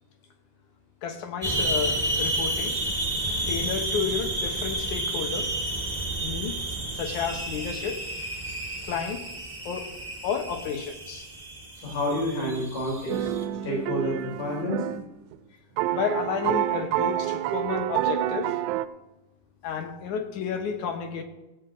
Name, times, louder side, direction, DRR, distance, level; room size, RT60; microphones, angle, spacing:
voice 1, 1.0-2.8 3.5-5.5 6.2-6.6 6.9-8.0 8.8-9.3 9.7-9.9 10.2-11.3 15.9-18.6 19.6-21.2, left 7 dB, 65° left, 5 dB, 2.3 m, -31 dB
sound 1, 1.4-13.4, right 1 dB, 40° right, 0.7 m, -31 dB
voice 2, 11.8-13.3 13.6-14.8, left 1 dB, 85° left, -3 dB, 5.3 m, -29 dB
sound 2, 13.1-15.1 15.3-15.4 15.8-18.9, right 13 dB, 85° right, 2.4 m, -28 dB
18.0 x 8.3 x 3.8 m, 1.0 s
omnidirectional pair, 4.2 m